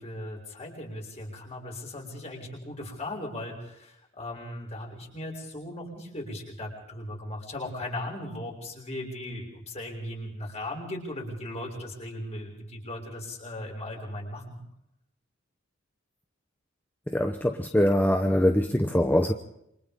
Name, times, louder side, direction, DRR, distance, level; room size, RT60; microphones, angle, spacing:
voice 1, 0.0-14.6, left 1 dB, 35° left, -1 dB, 6.4 m, -38 dB
voice 2, 17.1-19.3, left 1 dB, 10° left, 5 dB, 0.9 m, -23 dB
28.0 x 26.0 x 3.7 m, 0.79 s
head